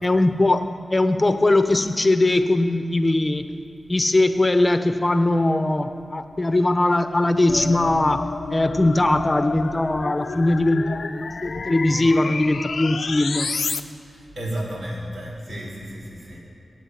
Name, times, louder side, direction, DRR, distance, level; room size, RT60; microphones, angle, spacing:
voice 1, 0.0-0.7 0.9-3.4 3.9-13.5, left 2 dB, 30° left, 8 dB, 0.9 m, -20 dB
sound 1, 7.5-13.8, left 4 dB, 75° left, 0.6 m, -31 dB
voice 2, 14.1-16.4, right 1 dB, 80° right, -5 dB, 4.5 m, -32 dB
20.0 x 8.8 x 8.3 m, 2.7 s
wide cardioid pair, 70°, 0 cm